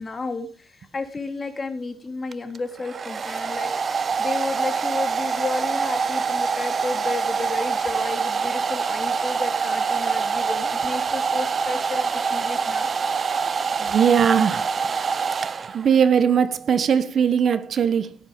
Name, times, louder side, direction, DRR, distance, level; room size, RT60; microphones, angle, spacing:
voice 1, 0.0-12.9, left 3 dB, 30° left, 2.8 m, -32 dB
Domestic sounds home sounds, 2.3-16.0, right 5 dB, 40° right, 0.8 m, -25 dB
voice 2, 13.8-15.1 15.7-18.2, right 7 dB, 55° right, 1.2 m, -20 dB
17.5 x 7.9 x 5.2 m
cardioid pair, 90°, 0 cm